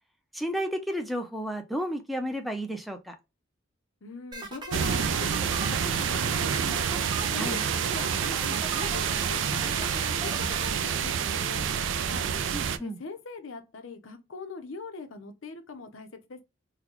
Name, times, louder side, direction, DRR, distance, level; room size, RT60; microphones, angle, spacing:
voice 1, 0.3-3.1 7.3-7.6 12.5-13.0, equal, ahead, 0.5 m, -32 dB
voice 2, 4.0-6.8 7.1-7.6 7.8-12.3 12.8-16.4, left 4 dB, 75° left, 0.7 m, -42 dB
sound 1, 4.3-10.7, right 2 dB, 20° right, 0.9 m, -38 dB
sound 2, 4.7-12.8, right 7 dB, 65° right, 0.4 m, -28 dB
3.9 x 2.2 x 2.9 m
head